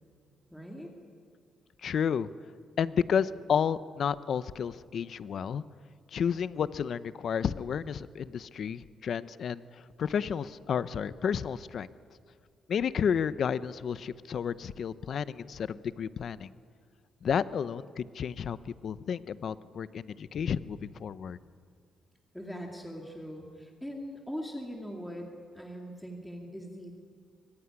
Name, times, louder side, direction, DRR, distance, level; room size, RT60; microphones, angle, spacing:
voice 1, 0.5-0.9 22.3-26.9, equal, ahead, 0 dB, 2.3 m, -41 dB
voice 2, 1.8-2.3 2.8-5.6 6.1-11.9 12.7-16.5 17.2-21.4, left 7 dB, 45° left, 15 dB, 0.7 m, -31 dB
24.5 x 24.0 x 9.8 m, 2.2 s
cardioid pair, 170°, 0 cm